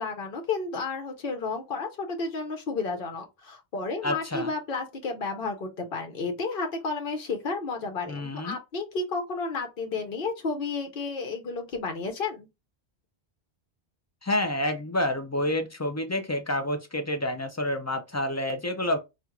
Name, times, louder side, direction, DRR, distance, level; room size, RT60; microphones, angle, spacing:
voice 1, 0.0-12.5, left 4 dB, 65° left, 1.0 m, -32 dB
voice 2, 4.0-4.5 8.1-8.6 14.2-19.0, left 1 dB, 20° left, 0.4 m, -28 dB
4.3 x 2.5 x 2.4 m
omnidirectional pair, 1.0 m